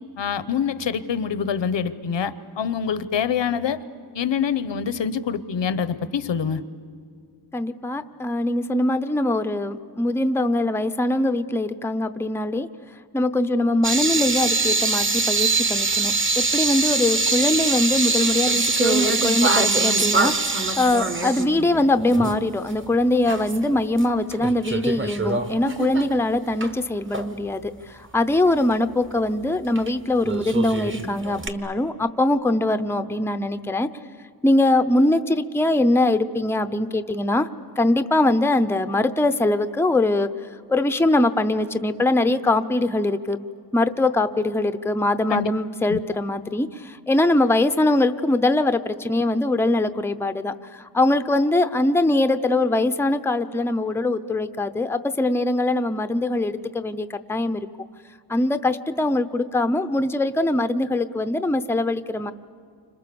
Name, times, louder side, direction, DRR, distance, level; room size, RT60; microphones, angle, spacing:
voice 1, 0.2-3.8 4.1-6.6 45.3-45.5 45.9-46.0, left 7 dB, 85° left, 14 dB, 1.0 m, -25 dB
voice 2, 7.5-12.7 13.1-33.9 34.4-37.5 37.8-40.3 40.7-43.4 43.7-57.6 58.3-62.3, left 2 dB, 5° left, 9 dB, 0.6 m, -22 dB
sound 1, 13.8-22.4 22.7-22.8 23.3-24.0 24.3-26.7 27.1-27.3 29.8-29.9 30.2-31.5, right 3 dB, 30° right, 1.2 m, -23 dB
30.0 x 26.5 x 7.0 m, 2.2 s
wide cardioid pair, 170°, 43 cm